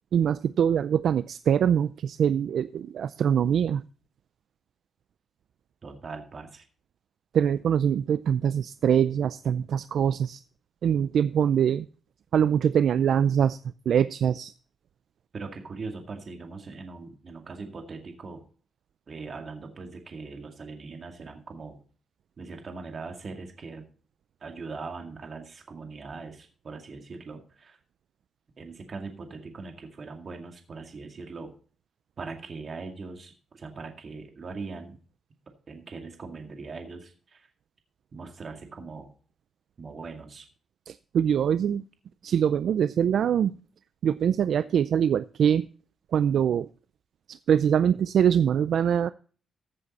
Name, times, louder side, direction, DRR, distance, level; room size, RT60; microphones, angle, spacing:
voice 1, 0.1-3.8 7.3-10.4 10.8-11.9 12.3-13.6 13.9-14.5 40.9-41.8 42.2-43.5 44.0-45.7 46.1-46.7 47.3-49.1, right 8 dB, 75° right, 14 dB, 0.4 m, -23 dB
voice 2, 5.8-6.6 15.3-18.4 19.1-21.8 22.4-23.9 24.4-27.8 28.6-31.5 32.2-35.0 35.7-37.5 38.1-39.1 39.8-40.5, right 4 dB, 45° right, 4 dB, 2.1 m, -40 dB
15.0 x 7.7 x 4.2 m, 0.41 s
cardioid pair, 100°, 0 cm